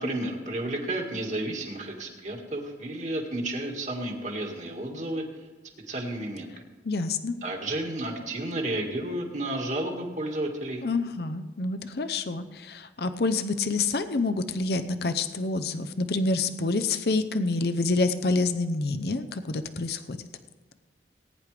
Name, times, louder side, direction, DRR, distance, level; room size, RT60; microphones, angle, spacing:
voice 1, 0.0-5.2 5.9-6.5 7.4-10.8, right 1 dB, 45° right, 2 dB, 1.9 m, -32 dB
voice 2, 6.8-7.4 10.8-20.2, left 3 dB, 65° left, 9 dB, 0.6 m, -27 dB
19.5 x 9.8 x 3.4 m, 1.3 s
head